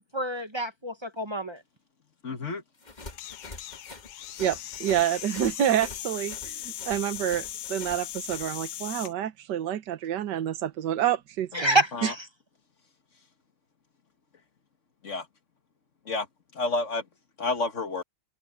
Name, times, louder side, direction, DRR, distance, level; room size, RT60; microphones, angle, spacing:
voice 1, 0.1-1.6 11.5-12.2, right 1 dB, 20° right, 0.8 m, -27 dB
voice 2, 2.2-2.6 11.5-11.6 11.9-12.1 15.0-15.3 16.0-16.3 16.5-17.0 17.4-18.0, left 3 dB, 40° left, 1.8 m, -30 dB
sound 1, 2.8-8.5, left 2 dB, 25° left, 1.7 m, -46 dB
sound 2, 3.0-9.1, left 12 dB, 70° left, 1.3 m, -39 dB
voice 3, 4.4-11.8, right 11 dB, 70° right, 1.7 m, -28 dB
omnidirectional pair, 2.0 m